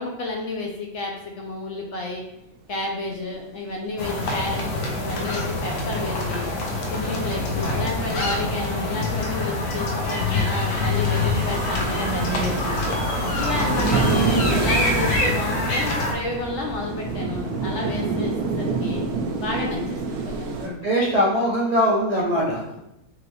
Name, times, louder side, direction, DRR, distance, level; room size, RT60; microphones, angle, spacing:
voice 1, 0.0-2.2 2.7-6.5 6.9-12.8 13.4-19.0 19.4-19.8 20.1-20.5, left 2 dB, 65° left, 0 dB, 0.8 m, -31 dB
sound 1, 2.9-3.6 4.4-6.8 7.3-20.7, right 4 dB, 85° right, 1.2 m, -29 dB
sound 2, 4.0-16.1, left 2 dB, 85° left, 1.2 m, -25 dB
sound 3, 11.7-18.2, right 2 dB, 35° right, 1.2 m, -32 dB
voice 2, 20.6-22.6, equal, 55° right, -5 dB, 0.4 m, -21 dB
3.7 x 3.1 x 3.1 m, 0.86 s
omnidirectional pair, 1.6 m